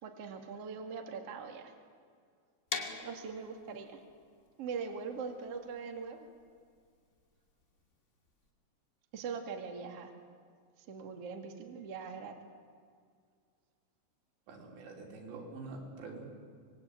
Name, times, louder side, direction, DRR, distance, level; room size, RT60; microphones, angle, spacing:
voice 1, 0.0-1.7 3.0-4.0 4.6-6.3 9.1-10.1 10.9-12.4, right 5 dB, 45° right, 4 dB, 2.5 m, -41 dB
sound 1, 2.7-8.5, left 3 dB, 30° left, 1.4 m, -45 dB
voice 2, 14.5-16.3, right 3 dB, 75° right, 0 dB, 6.1 m, -46 dB
25.5 x 21.5 x 9.0 m, 2.1 s
omnidirectional pair, 5.1 m